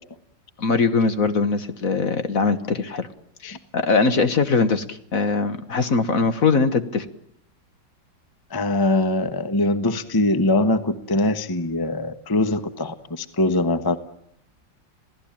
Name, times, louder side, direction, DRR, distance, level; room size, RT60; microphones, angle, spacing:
voice 1, 0.6-3.1 3.7-7.1, left 4 dB, 50° left, 10 dB, 1.7 m, -21 dB
voice 2, 8.5-14.0, left 2 dB, 15° left, 10 dB, 1.1 m, -22 dB
27.5 x 17.5 x 8.8 m, 0.76 s
omnidirectional pair, 2.0 m